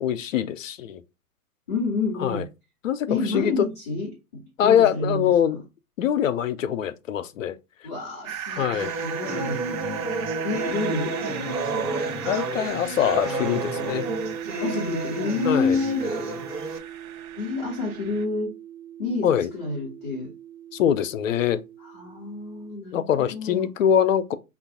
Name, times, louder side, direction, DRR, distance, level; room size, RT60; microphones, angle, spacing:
voice 1, 0.0-1.0 2.2-2.5 2.8-3.7 4.6-5.6 6.0-7.6 8.5-8.9 12.3-14.1 15.4-15.8 19.2-19.5 20.7-21.6 22.9-24.4, left 9 dB, 60° left, 0.6 m, -23 dB
voice 2, 1.7-2.5 3.1-5.6 7.8-9.6 10.4-12.0 14.6-16.1 17.4-18.6 19.0-20.3 21.8-23.1 23.3-23.7, left 3 dB, 10° left, 0.4 m, -29 dB
sound 1, 8.2-18.2, right 9 dB, 60° right, 0.6 m, -38 dB
sound 2, 8.8-16.8, right 3 dB, 85° right, 1.4 m, -30 dB
sound 3, 13.9-22.7, right 11 dB, 30° right, 0.8 m, -41 dB
5.1 x 2.4 x 3.4 m
figure-of-eight pair, 120°, 46 cm